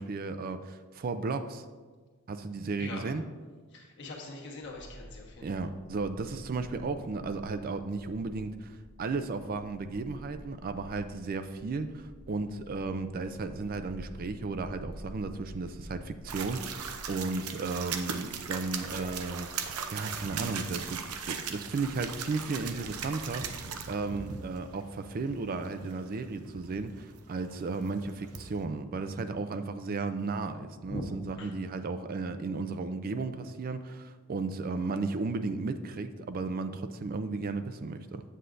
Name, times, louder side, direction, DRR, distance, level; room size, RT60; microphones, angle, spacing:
voice 1, 0.0-1.6 2.3-3.2 5.4-19.5 19.9-38.2, right 3 dB, 40° right, 10 dB, 0.4 m, -34 dB
voice 2, 3.7-5.7 30.8-31.1 31.4-31.5, left 2 dB, 55° left, -1 dB, 1.3 m, -42 dB
sound 1, 4.6-24.3, equal, 75° left, 0.7 m, -50 dB
sound 2, 16.3-28.6, right 6 dB, 90° right, 0.6 m, -39 dB
8.0 x 7.6 x 2.6 m, 1.4 s
head